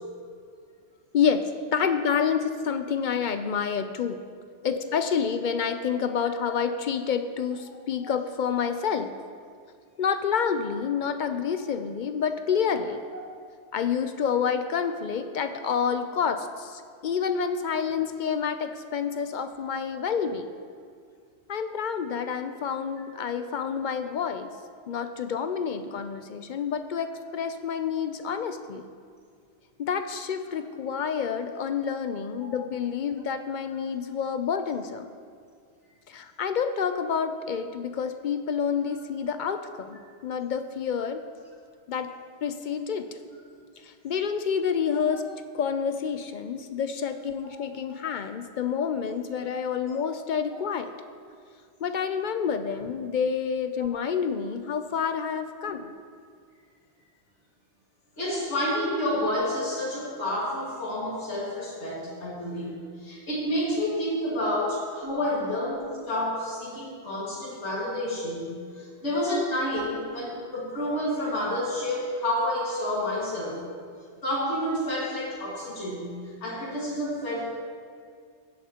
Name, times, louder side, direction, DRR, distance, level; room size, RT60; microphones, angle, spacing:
voice 1, 1.7-4.2 4.6-9.1 10.0-13.0 13.7-20.5 21.5-24.5 24.9-28.9 29.8-35.1 36.1-41.2 41.9-42.1 42.4-43.1 43.8-45.2 45.5-50.9 51.8-55.9 65.1-65.3, left 7 dB, 60° left, 9 dB, 0.6 m, -28 dB
voice 2, 58.2-73.6 74.2-77.5, left 1 dB, 85° left, -8 dB, 2.3 m, -29 dB
15.5 x 8.3 x 2.9 m, 2.2 s
omnidirectional pair, 1.2 m